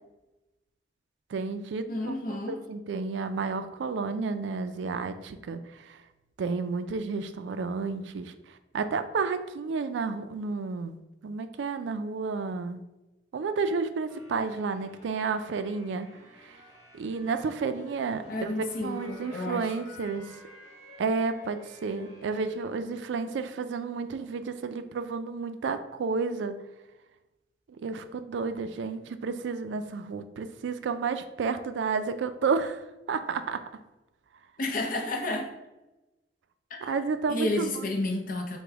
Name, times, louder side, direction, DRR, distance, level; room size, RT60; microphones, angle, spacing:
voice 1, 1.3-6.0 6.4-8.3 8.7-11.0 11.2-12.8 13.3-16.1 16.4-16.5 16.9-18.5 18.8-20.3 21.0-26.5 27.8-32.8 33.1-33.6 36.8-37.9, right 4 dB, 80° right, 10 dB, 0.3 m, -31 dB
voice 2, 1.9-2.6 18.3-19.7 34.6-35.5 36.7-36.9 37.3-38.6, left 2 dB, 50° left, 3 dB, 0.6 m, -31 dB
sound 1, 14.1-22.6, left 1 dB, 15° right, 1.3 m, -52 dB
4.9 x 2.2 x 3.4 m, 1.0 s
head